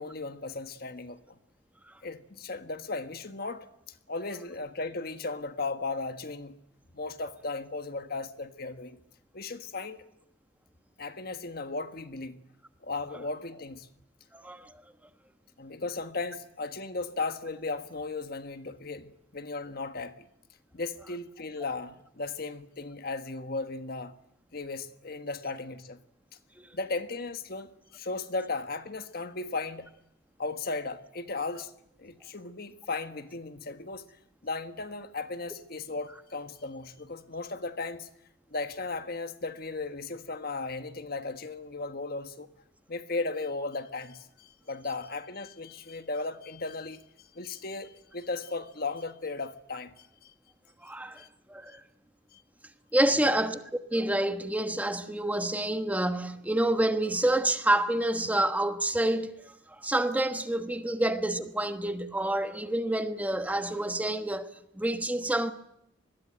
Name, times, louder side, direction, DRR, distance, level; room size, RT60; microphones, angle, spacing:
voice 1, 0.0-1.4 2.0-6.5 6.9-9.0 9.3-10.0 11.0-12.4 12.8-13.9 15.6-20.3 20.7-24.1 24.5-26.0 26.7-29.9 30.4-31.7 32.0-34.0 34.4-38.1 38.5-42.5 42.9-50.3 51.2-51.3 51.7-51.8 52.3-52.4 53.1-53.3, left 3 dB, 50° left, 1.5 m, -36 dB
voice 2, 14.3-14.8 26.6-26.7 50.8-51.8 52.9-53.6 53.9-64.5 64.7-65.5, right 1 dB, 10° right, 1.2 m, -28 dB
24.5 x 21.0 x 9.1 m
head